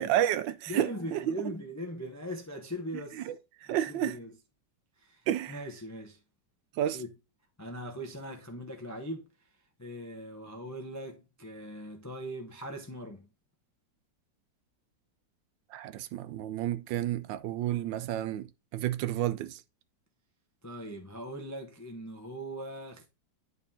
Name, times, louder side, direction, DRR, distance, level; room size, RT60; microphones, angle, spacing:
voice 1, 0.0-1.3 3.2-3.3 3.7-4.2 5.3-5.6 6.8-7.0 15.7-18.5 18.7-19.6, right 12 dB, 80° right, 1.3 m, -30 dB
voice 2, 0.7-3.3 3.6-4.3 5.0-6.2 6.9-7.1 7.6-9.3 9.8-13.3 20.6-23.1, equal, 25° left, 0.3 m, -40 dB
11.0 x 4.0 x 2.7 m
omnidirectional pair, 2.0 m